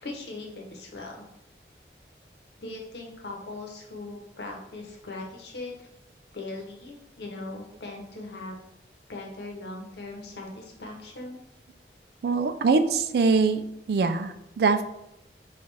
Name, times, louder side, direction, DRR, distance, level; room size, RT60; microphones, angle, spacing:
voice 1, 0.0-1.2 2.6-5.9 6.3-8.5 9.1-11.4, left 2 dB, 75° left, 0 dB, 0.9 m, -39 dB
voice 2, 12.2-13.6 13.9-14.8, right 4 dB, 65° right, 10 dB, 0.3 m, -23 dB
5.2 x 2.4 x 3.3 m, 0.84 s
head